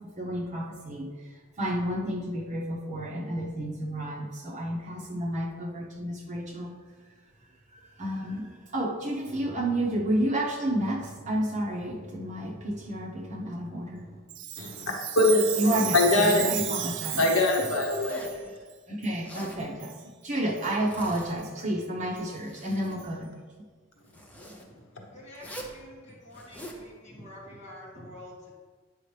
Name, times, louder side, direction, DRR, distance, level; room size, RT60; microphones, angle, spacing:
voice 1, 0.2-1.1 1.6-6.7 8.0-8.5 8.7-14.1 15.6-17.3 18.9-19.9 20.2-23.3, right 1 dB, 35° right, -1 dB, 1.0 m, -30 dB
Chime, 14.3-18.4 19.0-19.1 19.8-20.0 20.6-20.7 21.4-21.5 22.2-22.3 23.0-23.1, right 12 dB, 60° right, 0.4 m, -34 dB
voice 2, 15.2-16.8 17.2-18.2, left 2 dB, 80° left, 1 dB, 1.1 m, -23 dB
Zipper (clothing), 17.9-18.4 19.1-19.6 20.6-21.4 22.0-23.0 24.1-24.6 25.3-25.8 26.3-26.8, right 1 dB, 5° left, 0.7 m, -44 dB
voice 3, 25.1-28.5, left 1 dB, 35° left, -5 dB, 2.0 m, -47 dB
8.9 x 5.5 x 3.3 m, 1.5 s
head